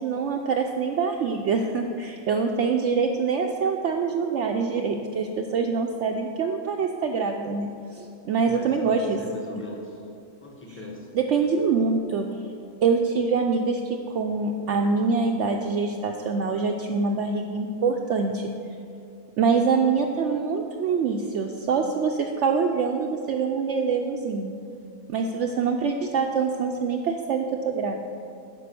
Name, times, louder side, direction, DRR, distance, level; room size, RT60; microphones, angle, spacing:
voice 1, 0.0-9.2 11.1-12.3 12.8-18.5 19.4-24.5 25.1-28.0, right 5 dB, 65° right, 3 dB, 0.8 m, -25 dB
voice 2, 8.5-10.0 10.4-11.4, left 1 dB, 10° left, -1 dB, 1.0 m, -39 dB
9.3 x 5.3 x 6.8 m, 2.5 s
omnidirectional pair, 1.5 m